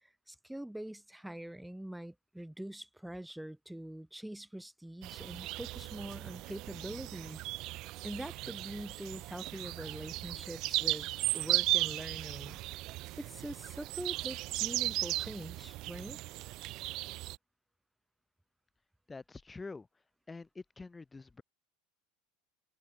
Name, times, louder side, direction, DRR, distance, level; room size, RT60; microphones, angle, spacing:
voice 1, 0.3-7.4 8.0-12.6 13.2-16.2, right 1 dB, 5° right, 3.1 m, -44 dB
sound 1, 5.0-17.4, right 18 dB, 55° right, 0.6 m, -36 dB
voice 2, 19.1-19.9 20.3-21.4, left 3 dB, 15° left, 7.8 m, -46 dB
supercardioid pair, 120°, 0 cm